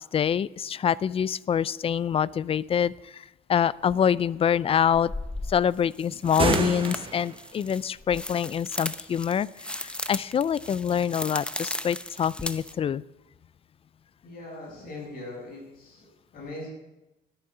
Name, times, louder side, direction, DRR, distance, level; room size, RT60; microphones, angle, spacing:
voice 1, 0.1-3.2 3.5-5.1 5.5-13.0, left 8 dB, 35° left, 21 dB, 0.4 m, -25 dB
sound 1, 3.9-4.0 4.9-12.7, left 1 dB, 5° left, 0.8 m, -36 dB
sound 2, 6.2-7.5, right 4 dB, 30° right, 1.4 m, -28 dB
voice 2, 14.2-16.1 16.3-16.7, left 2 dB, 55° left, -8 dB, 5.8 m, -40 dB
10.5 x 8.9 x 9.4 m, 0.97 s
cardioid pair, 110°, 17 cm